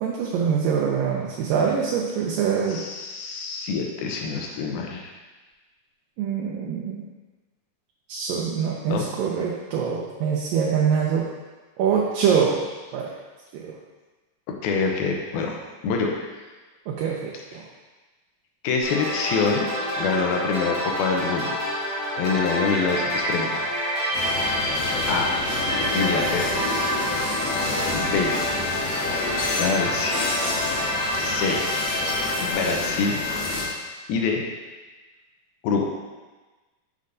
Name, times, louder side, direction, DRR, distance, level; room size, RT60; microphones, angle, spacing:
voice 1, 0.0-2.8 6.2-7.0 8.1-11.3 11.8-12.6 12.9-13.1 13.5-13.7 16.9-17.6, right 7 dB, 80° right, -3 dB, 2.3 m, -24 dB
voice 2, 2.7-5.1 8.9-9.1 14.5-15.6 15.8-16.3 18.6-19.7 20.0-21.6 22.1-23.7 25.1-25.3 25.9-26.7 27.9-28.4 29.4-30.2 31.2-31.7 32.4-33.2 34.1-34.4 35.6-35.9, left 5 dB, 85° left, 1 dB, 2.7 m, -25 dB
sound 1, 18.8-32.5, equal, 15° left, 0.9 m, -28 dB
sound 2, 24.1-33.6, left 3 dB, 60° left, 1.9 m, -28 dB
7.4 x 6.6 x 2.6 m, 1.2 s
omnidirectional pair, 4.2 m